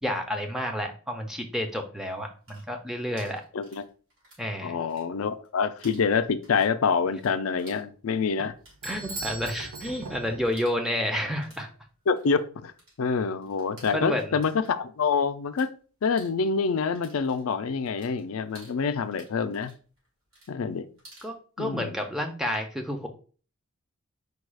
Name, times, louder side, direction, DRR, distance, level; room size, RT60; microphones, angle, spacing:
voice 1, 0.0-3.4 4.4-4.8 8.8-11.7 13.9-14.4 21.2-23.1, equal, ahead, 0.5 m, -30 dB
sound 1, 2.2-4.5 4.8-5.5 5.8-15.7 16.0-21.3, right 1 dB, 60° right, 2.4 m, -54 dB
voice 2, 4.6-8.5 12.1-12.7 13.0-15.7 16.0-19.7 20.5-20.8 21.6-21.9, left 5 dB, 75° left, 0.4 m, -26 dB
sound 2, 8.5-11.4, right 3 dB, 90° right, 0.6 m, -46 dB
Bell / Doorbell, 8.8-10.5, right 3 dB, 45° right, 0.9 m, -39 dB
4.7 x 2.3 x 4.7 m
head